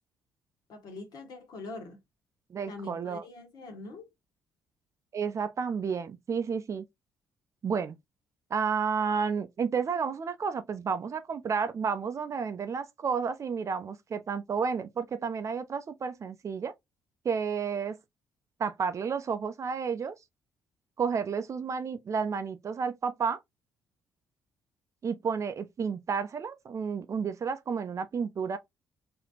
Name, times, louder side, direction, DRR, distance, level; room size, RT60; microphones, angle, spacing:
voice 1, 0.7-2.0 2.7-4.1, left 3 dB, 55° left, 1.5 m, -43 dB
voice 2, 2.5-3.2 5.1-6.8 7.6-8.0 8.5-16.7 17.2-18.0 18.6-20.1 21.0-23.4 25.0-28.6, right 6 dB, 40° right, 0.6 m, -31 dB
4.0 x 2.9 x 2.8 m
figure-of-eight pair, 45°, 8 cm